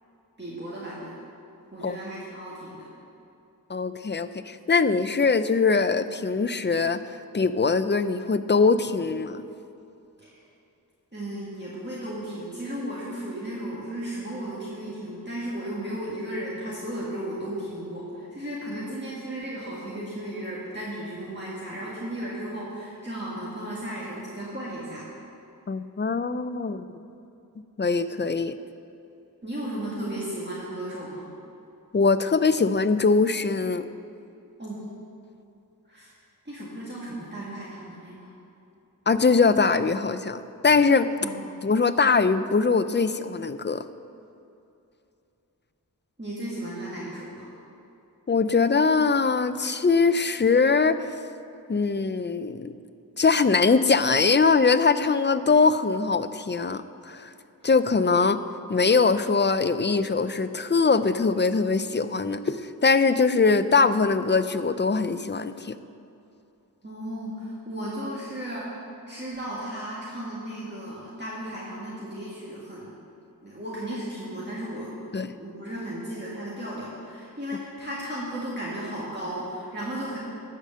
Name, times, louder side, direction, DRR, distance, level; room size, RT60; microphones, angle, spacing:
voice 1, 0.4-1.2 1.7-2.9 10.2-10.4 11.1-25.1 29.4-31.3 34.6-34.8 35.9-36.1 36.5-38.3 41.2-41.4 46.2-47.5 66.8-72.9 73.4-75.1 75.4-80.2, right 1 dB, 30° right, -7 dB, 2.0 m, -35 dB
voice 2, 3.7-9.4 25.7-26.8 27.8-28.5 31.9-33.8 39.1-41.1 41.6-43.8 48.3-51.0 51.7-52.7 53.2-57.3 57.6-58.4 58.7-65.8 75.1-75.3, left 4 dB, 30° left, 12 dB, 0.4 m, -22 dB
12.0 x 5.0 x 7.4 m, 2.7 s
wide cardioid pair, 40°, 37 cm